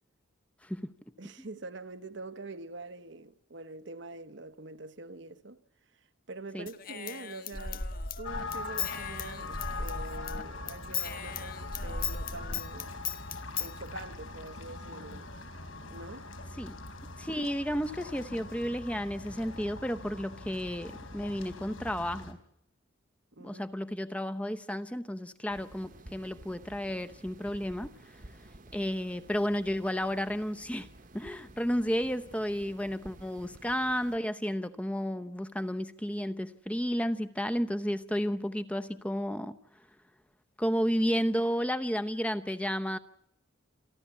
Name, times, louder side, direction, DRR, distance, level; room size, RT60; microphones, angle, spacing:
voice 1, 1.2-5.6 6.3-7.9 8.2-12.9 13.6-15.3 15.9-16.3 23.3-23.7, right 2 dB, 60° right, 1.1 m, -45 dB
Human voice / Scissors, 6.7-10.4 10.7-13.7, left 6 dB, 45° left, 1.5 m, -36 dB
sound 1, 8.2-22.3, left 3 dB, 80° left, 3.5 m, -42 dB
voice 2, 17.2-22.4 23.4-27.9 28.7-30.9 31.1-39.6 40.6-43.0, equal, 5° left, 0.8 m, -32 dB
sound 2, 25.5-34.2, right 1 dB, 40° right, 1.2 m, -53 dB
28.0 x 12.5 x 8.3 m
head